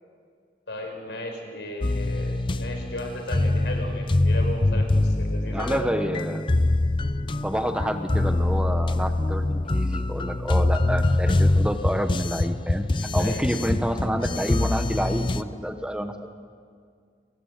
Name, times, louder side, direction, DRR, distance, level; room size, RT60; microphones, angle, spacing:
voice 1, 0.7-6.0 13.2-13.6, left 1 dB, 85° left, 4 dB, 5.2 m, -35 dB
sound 1, 1.8-15.4, left 2 dB, 30° left, 0.6 m, -24 dB
voice 2, 5.5-6.5 7.4-12.8 13.1-16.1, equal, 5° right, 6 dB, 1.1 m, -28 dB
29.5 x 23.5 x 6.7 m, 2.1 s
head